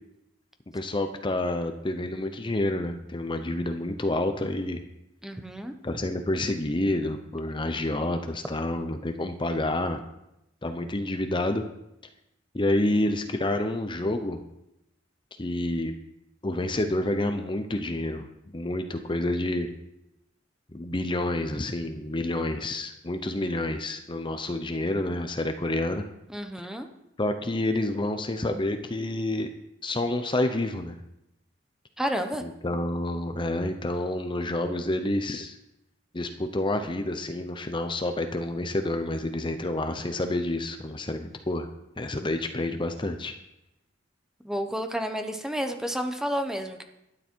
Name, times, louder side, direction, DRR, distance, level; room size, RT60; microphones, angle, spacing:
voice 1, 0.7-4.8 5.8-10.0 10.6-11.6 12.5-14.4 15.4-15.9 16.4-18.3 18.5-19.7 20.7-26.0 27.2-29.5 29.8-31.0 32.4-35.6 36.1-41.7 42.0-43.3, left 1 dB, 25° left, 7 dB, 0.8 m, -28 dB
voice 2, 5.2-5.7 26.3-26.9 32.0-32.4 44.4-46.8, equal, 5° right, 6 dB, 0.9 m, -30 dB
12.0 x 10.0 x 4.5 m, 0.85 s
head